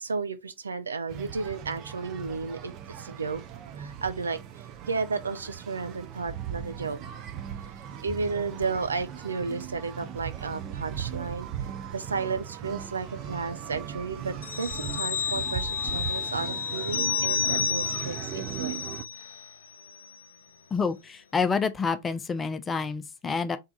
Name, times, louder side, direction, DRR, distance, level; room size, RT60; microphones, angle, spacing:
voice 1, 0.0-3.4 3.8-4.4 4.9-7.0 8.0-11.5 11.9-18.9, right 4 dB, 75° right, 0.6 m, -33 dB
sound 1, 1.1-19.0, right 10 dB, 35° right, 0.6 m, -38 dB
sound 2, 14.4-19.5 19.9-20.0, left 8 dB, 65° left, 0.4 m, -31 dB
voice 2, 20.7-23.6, left 5 dB, 20° left, 0.6 m, -28 dB
3.6 x 3.5 x 4.0 m
figure-of-eight pair, 90°, 0 cm